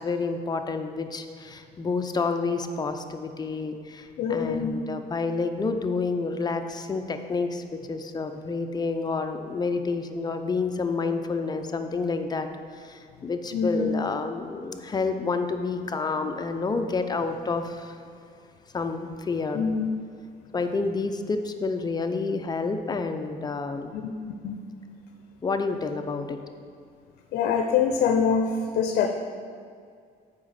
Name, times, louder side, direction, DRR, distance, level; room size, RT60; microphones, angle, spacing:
voice 1, 0.0-12.5 12.7-18.0 18.7-19.6 20.5-23.9 25.4-26.4, left 4 dB, 25° left, 6 dB, 0.6 m, -29 dB
voice 2, 4.2-4.8 13.5-13.9 19.5-19.9 23.9-24.6 27.3-29.1, left 6 dB, 70° left, 5 dB, 0.6 m, -25 dB
7.6 x 5.1 x 5.8 m, 2.2 s
cardioid pair, 110°, 17 cm